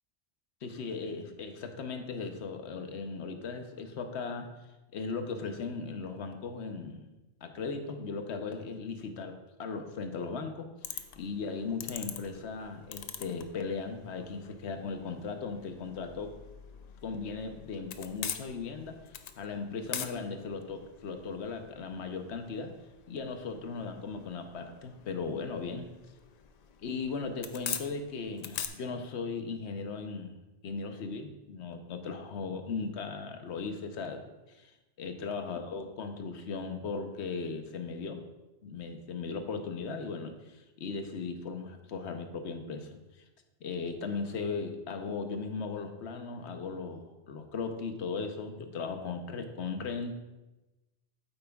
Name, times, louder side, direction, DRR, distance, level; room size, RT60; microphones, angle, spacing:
voice 1, 0.6-4.5 4.9-7.1 7.4-16.3 17.0-19.0 19.4-22.7 23.1-25.9 26.8-30.4 30.6-34.7 35.0-38.2 38.6-43.0 43.6-50.1, left 4 dB, 90° left, 6 dB, 1.1 m, -37 dB
sound 1, 10.8-28.7, left 7 dB, 55° left, 0.5 m, -44 dB
8.8 x 8.0 x 2.3 m, 1.1 s
omnidirectional pair, 1.1 m